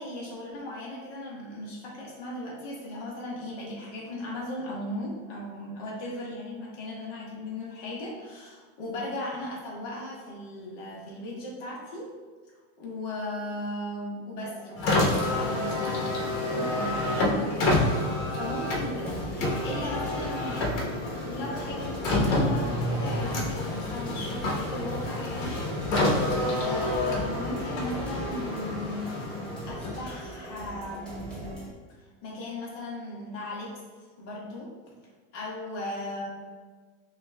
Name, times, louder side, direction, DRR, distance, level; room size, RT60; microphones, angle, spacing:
voice 1, 0.0-12.1 12.8-21.0 21.2-31.7 32.0-33.7 34.2-34.7 35.3-36.3, left 1 dB, 55° left, -4 dB, 1.4 m, -37 dB
sound 1, 14.4-31.7, right 1 dB, ahead, 0.9 m, -42 dB
Car, 14.7-30.2, left 1 dB, 85° left, 1.1 m, -28 dB
6.1 x 2.5 x 2.2 m, 1.4 s
supercardioid pair, 145°, 40 cm